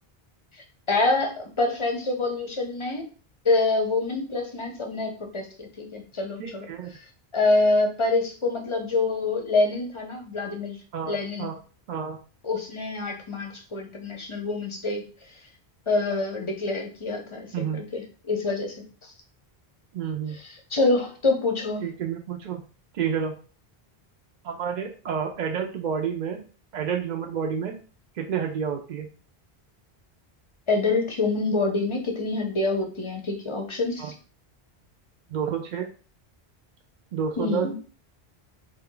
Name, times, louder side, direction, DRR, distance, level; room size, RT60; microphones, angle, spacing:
voice 1, 0.9-3.0 3.4-6.7 7.3-10.8 11.1-11.5 12.4-15.0 15.9-18.8 20.3-21.9 30.7-34.1 37.4-37.7, left 3 dB, 35° left, 3 dB, 0.6 m, -26 dB
voice 2, 6.4-6.9 10.9-11.5 11.9-12.2 17.5-17.9 19.9-20.4 21.8-22.6 22.9-23.4 24.4-26.4 26.7-27.8 28.2-29.1 34.0-34.1 35.3-35.9 37.1-37.7, right 7 dB, 55° right, 2 dB, 0.6 m, -29 dB
3.7 x 2.2 x 3.7 m, 0.38 s
omnidirectional pair, 1.0 m